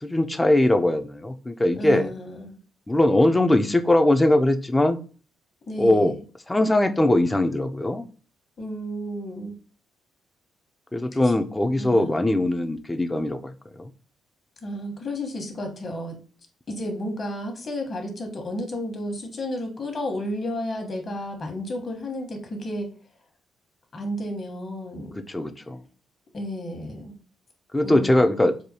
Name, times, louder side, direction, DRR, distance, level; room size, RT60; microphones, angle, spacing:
voice 1, 0.0-2.1 2.9-5.0 5.8-6.1 6.5-8.0 10.9-13.5 13.8-13.9 25.2-25.8 27.7-28.5, left 1 dB, 15° left, 7 dB, 0.4 m, -21 dB
voice 2, 1.8-2.6 5.7-6.2 8.6-9.5 11.2-11.3 11.8-12.2 14.6-16.2 16.7-22.9 23.9-25.2 26.3-27.2 27.8-28.5, left 1 dB, 45° left, 3 dB, 1.1 m, -32 dB
4.8 x 2.2 x 2.8 m, 0.38 s
cardioid pair, 90°, 0 cm